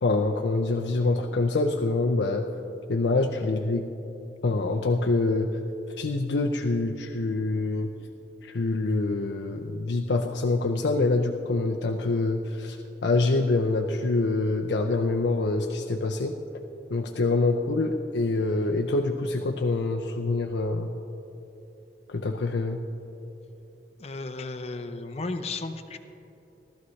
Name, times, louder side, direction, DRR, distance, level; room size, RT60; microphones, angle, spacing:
voice 1, 0.0-2.4 2.9-3.9 4.4-5.6 6.0-7.9 8.5-12.8 13.0-16.3 16.9-20.9 22.1-22.8, left 3 dB, 85° left, 2 dB, 0.6 m, -25 dB
voice 2, 24.0-26.0, left 3 dB, 35° left, 7 dB, 0.6 m, -34 dB
18.0 x 13.0 x 3.2 m, 2.9 s
head